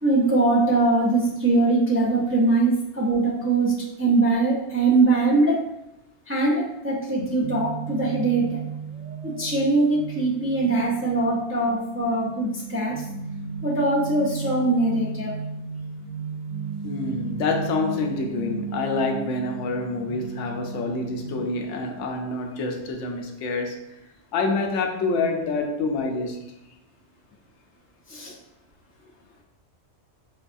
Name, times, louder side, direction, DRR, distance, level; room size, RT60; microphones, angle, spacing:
voice 1, 0.0-3.7 4.0-5.6 6.3-8.6 9.2-13.0 13.6-15.3 28.1-28.3, right 2 dB, 15° right, -6 dB, 0.4 m, -22 dB
sound 1, 7.4-21.4, right 5 dB, 90° right, 1.0 m, -34 dB
voice 2, 16.8-23.8 24.3-26.4, left 3 dB, 85° left, 3 dB, 0.9 m, -27 dB
4.7 x 2.3 x 2.5 m, 0.86 s
omnidirectional pair, 1.2 m